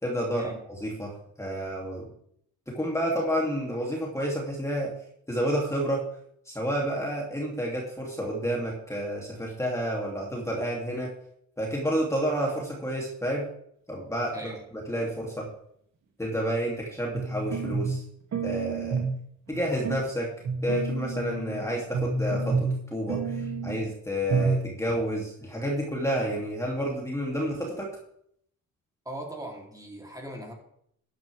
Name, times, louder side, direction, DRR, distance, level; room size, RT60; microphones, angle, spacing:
voice 1, 0.0-2.1 2.7-4.9 5.3-6.0 6.5-11.1 11.6-13.5 13.9-14.5 14.9-15.5 16.2-18.0 18.4-19.0 19.5-20.3 20.6-27.9, equal, 10° left, -2 dB, 3.0 m, -30 dB
sound 1, 17.1-18.0 18.3-19.2 19.5-20.0 20.4-21.6 21.9-22.8 23.1-23.8 24.3-24.6 24.9-25.0, right 4 dB, 60° right, 2.6 m, -29 dB
voice 2, 29.1-30.5, right 1 dB, 10° right, -1 dB, 3.5 m, -39 dB
13.0 x 10.5 x 3.6 m, 0.70 s
cardioid pair, 90°, 30 cm